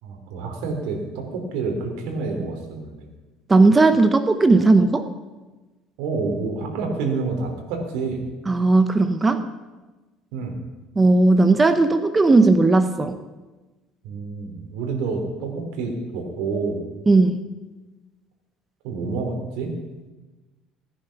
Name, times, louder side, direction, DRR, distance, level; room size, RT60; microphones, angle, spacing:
voice 1, 0.0-3.1 6.0-8.2 10.3-10.5 14.0-16.8 18.8-19.7, right 4 dB, 85° right, 2 dB, 3.5 m, -28 dB
voice 2, 3.5-5.1 8.5-9.5 11.0-13.2 17.1-17.4, right 3 dB, 15° right, 10 dB, 0.8 m, -16 dB
18.0 x 10.0 x 5.9 m, 1.2 s
cardioid pair, 140°, 0 cm